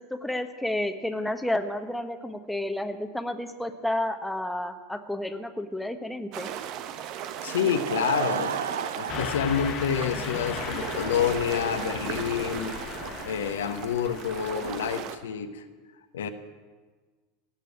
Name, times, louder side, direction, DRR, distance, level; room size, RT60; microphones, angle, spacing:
voice 1, 0.1-6.5, left 1 dB, 5° left, 7 dB, 1.2 m, -31 dB
sound 1, 6.3-15.2, right 10 dB, 50° right, 1.1 m, -37 dB
voice 2, 7.4-8.5 9.0-12.7 13.3-15.6 16.1-16.3, left 8 dB, 80° left, 7 dB, 1.1 m, -28 dB
Laughter / Crowd, 7.4-14.3, right 7 dB, 80° right, 0.8 m, -36 dB
Car passing by / Truck, 9.1-15.0, left 9 dB, 45° left, 1.0 m, -37 dB
17.0 x 6.9 x 9.9 m, 1.4 s
hypercardioid pair, 85°, 0 cm